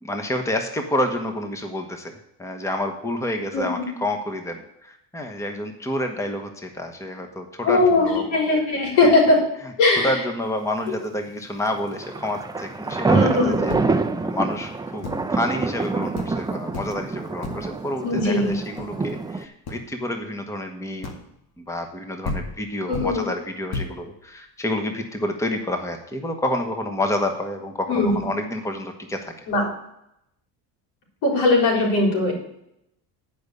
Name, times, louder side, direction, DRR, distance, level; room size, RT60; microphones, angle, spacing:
voice 1, 0.0-2.1 2.4-8.4 9.0-9.2 10.0-21.2 21.6-29.5, left 1 dB, 5° left, 5 dB, 1.2 m, -29 dB
voice 2, 3.5-3.8 7.6-9.4 9.8-10.2 13.1-13.6 18.0-18.5 22.9-23.3 27.9-28.3 29.5-29.6 31.2-32.3, left 2 dB, 80° left, 0 dB, 4.0 m, -19 dB
sound 1, 11.8-19.4, right 3 dB, 10° right, 0.6 m, -26 dB
sound 2, 13.7-14.2 15.0-15.4 15.8-15.9 16.2-16.5 16.7-17.1 17.4-17.8 18.4-19.1 19.7-19.9 21.0-21.4 22.0-22.1 22.2-23.3 23.7-24.0, left 3 dB, 55° left, 2.0 m, -33 dB
10.5 x 5.3 x 6.8 m, 0.79 s
cardioid pair, 105°, 44 cm